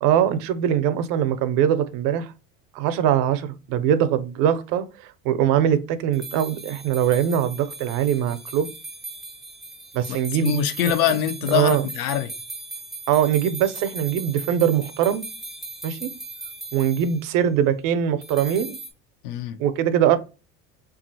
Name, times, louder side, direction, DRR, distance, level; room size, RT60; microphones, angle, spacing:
voice 1, 0.0-2.3 2.7-8.7 9.9-10.6 11.1-11.2 11.5-11.9 13.1-15.3 15.8-16.1 16.7-18.8 19.6-20.2, right 9 dB, 70° right, 0.5 m, -22 dB
sound 1, 6.1-17.2 18.2-18.9, right 2 dB, ahead, 0.3 m, -38 dB
voice 2, 10.1-12.3 19.2-19.6, left 9 dB, 80° left, 0.6 m, -24 dB
2.7 x 2.4 x 2.7 m
supercardioid pair, 120°, 35 cm